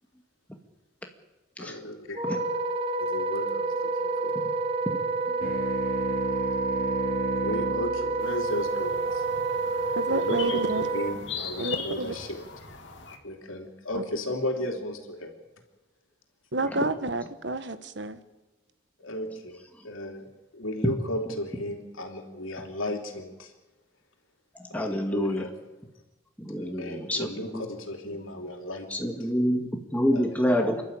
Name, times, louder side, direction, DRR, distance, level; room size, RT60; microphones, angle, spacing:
voice 1, 1.6-2.5 3.0-4.4 7.4-9.2 10.1-12.4 13.2-15.3 19.0-23.5 24.7-25.5 26.6-29.1 30.1-30.2 30.6-30.7, left 1 dB, 85° left, 3.2 m, -35 dB
Wind instrument woodwind instrument, 2.2-11.2, right 3 dB, 30° right, 1.4 m, -28 dB
sound 1, 5.4-10.3, equal, 45° left, 2.6 m, -36 dB
sound 2, 8.2-13.2, left 6 dB, 65° left, 2.5 m, -40 dB
voice 2, 10.0-10.9 11.6-12.1 14.0-14.1 16.5-18.2, right 2 dB, 60° right, 1.3 m, -29 dB
voice 3, 24.6-25.5 26.4-27.7 28.9-30.8, equal, 5° left, 2.1 m, -27 dB
28.5 x 12.0 x 9.2 m
head